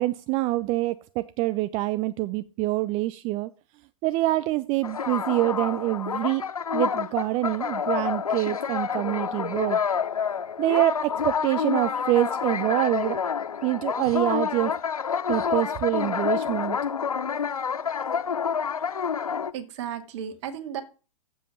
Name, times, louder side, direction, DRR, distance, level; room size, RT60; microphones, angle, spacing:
voice 1, 0.0-3.5 4.0-9.8 10.6-13.2 13.6-14.8 15.3-16.8, right 17 dB, 30° right, 0.5 m, -26 dB
sound 1, 4.8-19.5, left 7 dB, 85° left, 0.7 m, -28 dB
voice 2, 19.5-20.8, right 9 dB, 55° right, 2.1 m, -34 dB
8.2 x 7.6 x 7.0 m
hypercardioid pair, 110°, 18 cm